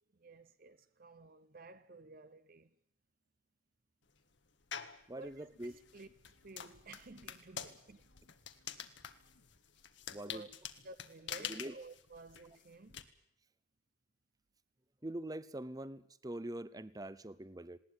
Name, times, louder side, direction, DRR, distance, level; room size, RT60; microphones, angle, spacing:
voice 1, 0.1-2.7 5.1-8.1 10.3-10.5 10.8-13.1, right 2 dB, 45° right, 0.8 m, -54 dB
sound 1, 4.7-5.0 5.6-13.0, left 8 dB, 65° left, 1.5 m, -46 dB
voice 2, 5.1-5.7 10.1-10.4 11.4-11.7 15.0-17.8, right 1 dB, 20° right, 0.8 m, -44 dB
sound 2, 5.2-9.6, left 1 dB, 80° left, 2.9 m, -70 dB
20.0 x 18.5 x 9.7 m
head